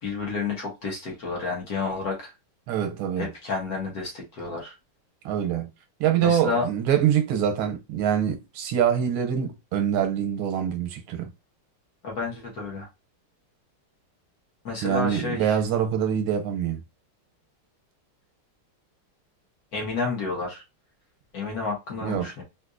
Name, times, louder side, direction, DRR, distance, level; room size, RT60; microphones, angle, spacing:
voice 1, 0.0-2.3 3.2-4.7 6.2-6.7 12.0-12.9 14.6-15.6 19.7-20.6 21.3-22.4, left 4 dB, 55° left, 1.2 m, -30 dB
voice 2, 2.7-3.3 5.2-5.7 6.0-11.3 14.8-16.8 22.0-22.3, right 9 dB, 85° right, 1.5 m, -25 dB
3.6 x 2.6 x 2.5 m
omnidirectional pair, 2.3 m